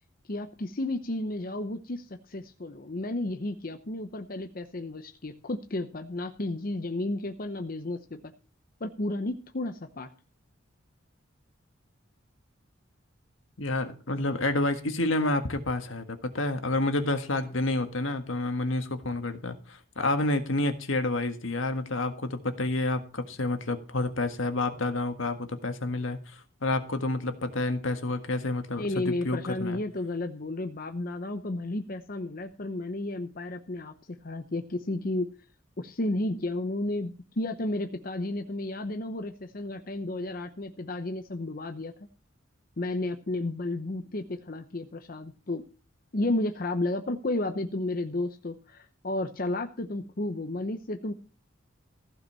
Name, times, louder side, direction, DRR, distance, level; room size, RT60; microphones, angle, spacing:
voice 1, 0.3-8.3 8.8-10.1 28.8-35.3 35.8-41.9 42.8-45.6 46.1-51.1, left 2 dB, 45° left, 7 dB, 0.8 m, -32 dB
voice 2, 13.6-29.8, left 2 dB, 75° left, 8 dB, 1.7 m, -29 dB
15.5 x 5.3 x 7.4 m, 0.37 s
head